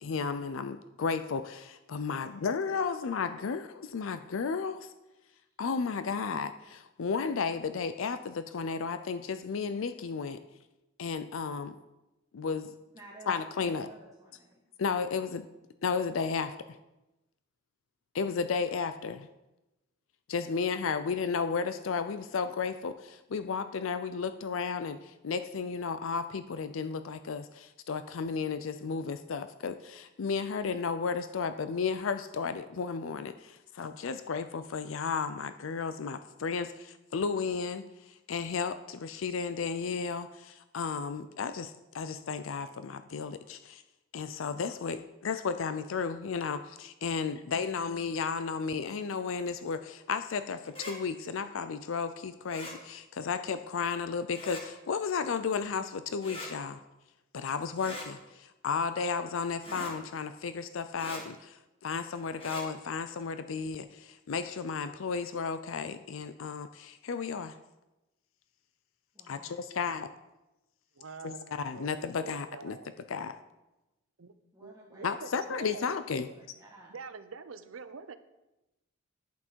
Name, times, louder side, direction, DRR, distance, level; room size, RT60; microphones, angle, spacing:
voice 1, 0.0-4.9 5.6-10.4 11.0-11.8 12.3-12.7 13.3-13.9 14.8-15.4 15.8-16.6 18.1-19.3 20.3-43.8 44.1-56.8 57.3-67.6 69.3-70.1 71.2-72.8 73.1-73.4 75.0-76.3, left 5 dB, 75° left, 11 dB, 0.5 m, -33 dB
voice 2, 2.0-2.6 2.9-3.0 5.5-5.6 12.9-14.6 69.1-69.8 74.5-75.8 76.1-76.9, right 1 dB, 15° right, -5 dB, 1.6 m, -55 dB
sound 1, 50.7-50.9 52.5-52.7 54.3-54.6 56.2-56.5 57.8-58.1 59.6-59.9 60.9-61.2 62.3-62.6, left 1 dB, 25° left, 2.2 m, -41 dB
voice 3, 71.0-71.9 72.2-73.0 74.2-74.3 74.6-75.9 76.9-78.2, right 4 dB, 80° right, 11 dB, 0.7 m, -45 dB
11.0 x 8.5 x 4.6 m, 0.98 s
head